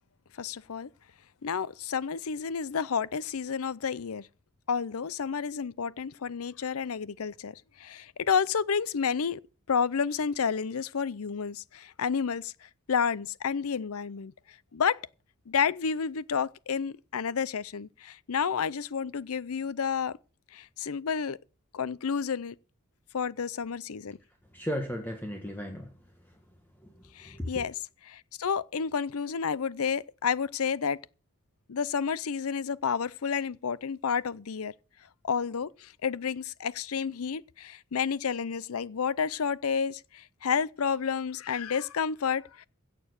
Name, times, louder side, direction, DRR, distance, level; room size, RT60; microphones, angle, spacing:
voice 1, 0.4-0.9 1.4-4.3 4.7-9.4 9.7-14.3 14.7-15.0 15.5-20.2 20.5-21.4 21.7-22.5 23.1-24.2 27.1-27.7 28.1-31.0 31.7-34.7 35.2-42.7, left 6 dB, 80° left, 0.6 m, -30 dB
voice 2, 24.5-25.9 26.8-27.6, equal, 10° left, 1.5 m, -36 dB
16.0 x 6.8 x 6.7 m
head